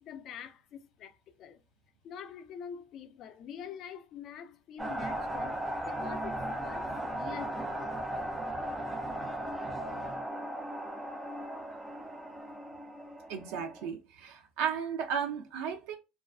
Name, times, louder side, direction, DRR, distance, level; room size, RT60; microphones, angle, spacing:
voice 1, 0.0-1.6 2.0-8.1, left 8 dB, 50° left, 0.4 m, -46 dB
sound 1, 4.8-13.9, right 1 dB, 10° right, 0.5 m, -37 dB
voice 2, 13.3-16.0, right 7 dB, 80° right, 0.4 m, -34 dB
2.4 x 2.2 x 2.2 m
supercardioid pair, 110°, 0 cm